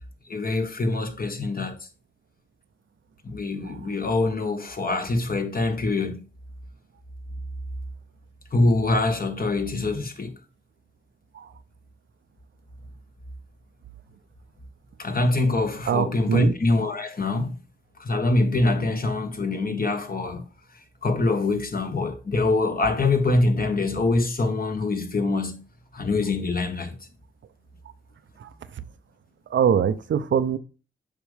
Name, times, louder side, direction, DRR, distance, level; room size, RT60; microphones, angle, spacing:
voice 1, 0.3-1.8 3.2-6.2 8.5-10.3 15.0-17.5 18.0-20.4 21.0-25.6 25.9-27.0, left 2 dB, 45° left, 1.4 m, -24 dB
voice 2, 15.9-16.5 28.4-28.5 29.5-30.6, right 8 dB, 70° right, 0.6 m, -23 dB
7.3 x 5.2 x 3.4 m
cardioid pair, 50°, 20 cm